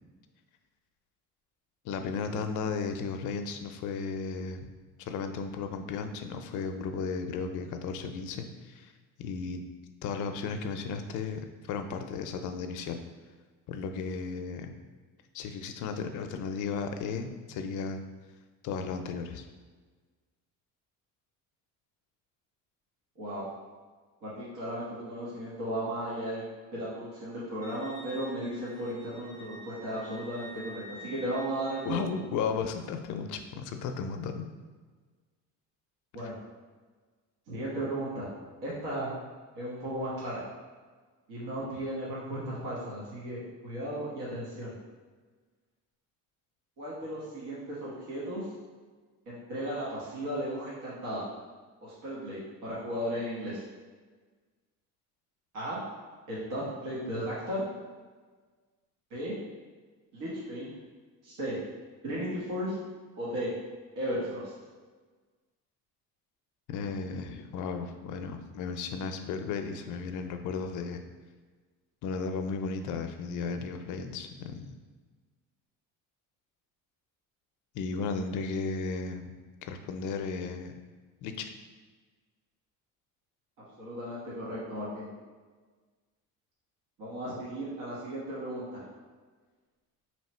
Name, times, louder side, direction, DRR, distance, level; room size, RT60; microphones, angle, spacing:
voice 1, 1.8-4.6 5.0-8.9 9.2-9.6 10.0-13.0 13.7-14.7 15.3-18.0 18.6-19.4 31.8-34.5 36.2-36.3 66.7-71.0 72.0-74.7 77.7-79.3 79.6-80.7 81.2-81.5, left 5 dB, 65° left, 6 dB, 0.5 m, -34 dB
voice 2, 23.2-23.5 24.2-26.4 26.7-32.0 36.1-36.3 37.5-38.3 38.6-39.1 39.5-40.4 41.3-44.7 46.8-48.5 49.3-51.3 51.8-53.6 55.5-55.8 56.3-57.6 59.1-59.3 60.1-60.7 61.2-61.6 62.0-62.8 63.2-63.5 64.0-64.5 83.6-85.1 87.0-88.8, right 1 dB, 70° right, -7 dB, 1.3 m, -35 dB
Wind instrument woodwind instrument, 27.6-32.1, left 1 dB, 10° right, 0.8 m, -49 dB
3.1 x 2.8 x 4.2 m, 1.4 s
cardioid pair, 130°, 33 cm